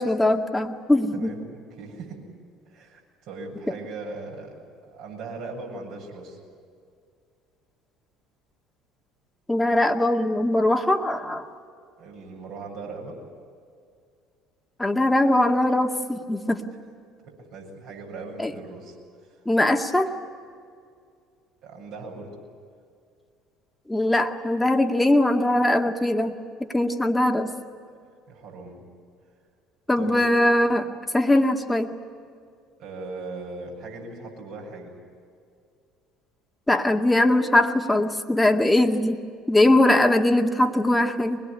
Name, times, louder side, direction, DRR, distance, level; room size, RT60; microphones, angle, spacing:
voice 1, 0.0-1.3 9.5-11.5 14.8-16.6 18.4-18.5 19.5-20.1 23.9-26.3 26.6-27.5 29.9-31.9 36.7-39.2 39.5-41.4, left 1 dB, 10° left, 4 dB, 2.1 m, -21 dB
voice 2, 1.1-2.2 2.7-6.4 12.0-13.2 17.2-19.4 21.6-22.3 28.3-28.8 30.0-30.2 32.8-35.0, right 3 dB, 60° right, 0 dB, 7.7 m, -39 dB
24.0 x 21.0 x 10.0 m, 2.3 s
hypercardioid pair, 60°, 0 cm